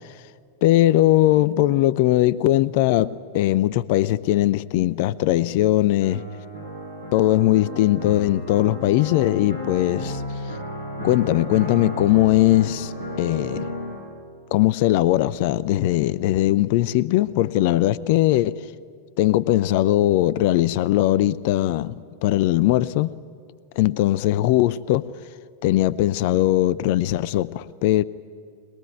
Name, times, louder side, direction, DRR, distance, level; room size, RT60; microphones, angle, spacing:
voice 1, 0.6-6.2 7.1-10.2 11.0-12.9 13.2-13.7 14.5-18.6 19.2-21.9 22.2-23.1 23.8-25.1 25.6-28.0, left 15 dB, 50° left, 0.6 m, -20 dB
sound 1, 6.0-14.0, equal, 80° right, 7.7 m, -33 dB
21.5 x 21.5 x 9.2 m
figure-of-eight pair, 90°, 0 cm